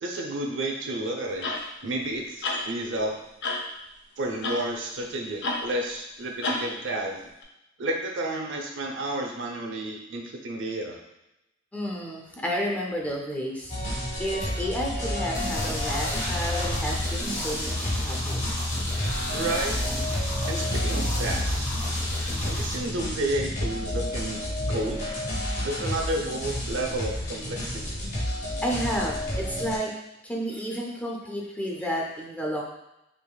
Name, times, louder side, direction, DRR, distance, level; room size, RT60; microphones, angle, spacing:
voice 1, 0.0-1.5 1.8-3.2 4.2-7.3 7.8-11.0 19.3-19.8 20.5-21.6 22.5-24.4 24.7-25.0 25.6-28.0, right 1 dB, 75° right, 1 dB, 0.6 m, -31 dB
sound 1, 1.4-1.7 2.4-2.7 3.4-3.7 4.4-4.7 5.4-5.7 6.4-6.7 7.4-7.5, left 2 dB, 60° left, 0.5 m, -29 dB
voice 2, 11.7-13.8 14.2-18.5 28.6-29.9 30.2-32.6, equal, 10° left, -2 dB, 0.5 m, -31 dB
sound 2, 13.7-29.8, left 1 dB, 40° left, 1.0 m, -31 dB
sound 3, 15.3-22.7, left 1 dB, 80° left, 1.2 m, -31 dB
4.6 x 2.9 x 2.3 m, 0.90 s
head